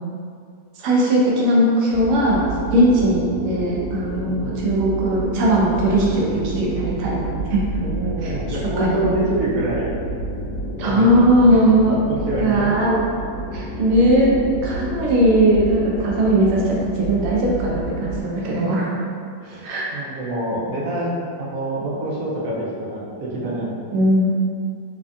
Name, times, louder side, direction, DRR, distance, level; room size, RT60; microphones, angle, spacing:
voice 1, 0.8-2.4 2.7-7.3 7.5-7.7 8.2-9.0 10.8-11.9 12.4-13.0 13.5-14.4 14.6-18.8 19.6-19.9 23.9-24.3, right 1 dB, 70° right, -4 dB, 0.9 m, -19 dB
sound 1, 1.9-18.2, right 1 dB, 70° left, 1.5 m, -29 dB
voice 2, 7.8-9.9 10.8-11.6 12.1-12.6 18.3-18.7 19.4-23.7, right 1 dB, 85° right, -6 dB, 1.2 m, -26 dB
3.3 x 2.1 x 2.5 m, 2.3 s
omnidirectional pair, 1.6 m